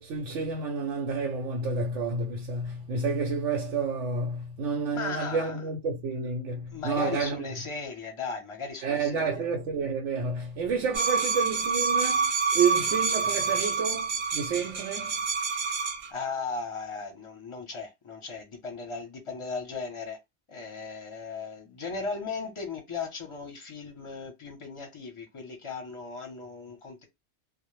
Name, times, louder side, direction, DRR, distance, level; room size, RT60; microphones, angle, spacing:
voice 1, 0.0-7.5 8.8-15.3, right 4 dB, 90° right, 0.9 m, -30 dB
voice 2, 4.9-5.6 6.7-9.3 16.1-20.2 20.5-27.0, left 4 dB, 30° left, 0.6 m, -37 dB
sound 1, 10.9-16.1, right 5 dB, 55° right, 0.5 m, -27 dB
2.1 x 2.0 x 3.0 m
omnidirectional pair, 1.2 m